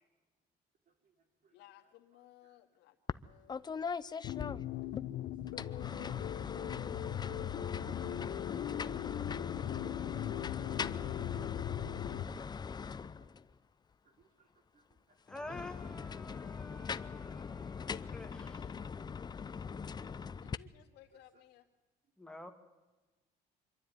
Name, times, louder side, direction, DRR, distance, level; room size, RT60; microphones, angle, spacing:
voice 1, 0.9-2.6 4.1-4.2 5.2-6.0 11.0-11.1 13.2-13.4 14.0-16.5 18.5-18.9 20.0-20.6 20.9-21.5, right 4 dB, 55° right, 4 dB, 4.4 m, -73 dB
voice 2, 1.5-3.7 20.4-21.7, left 13 dB, 85° left, 5 dB, 2.2 m, -60 dB
sound 1, 3.1-3.2 3.5-5.1 5.5-13.5 15.3-20.6, left 6 dB, 25° left, 0.6 m, -41 dB
sound 2, 4.2-12.2, left 11 dB, 65° left, 0.9 m, -39 dB
voice 3, 15.3-18.6 22.2-22.5, left 2 dB, 5° left, 5 dB, 2.3 m, -49 dB
25.5 x 12.5 x 9.5 m, 1.2 s
cardioid pair, 110°, 17 cm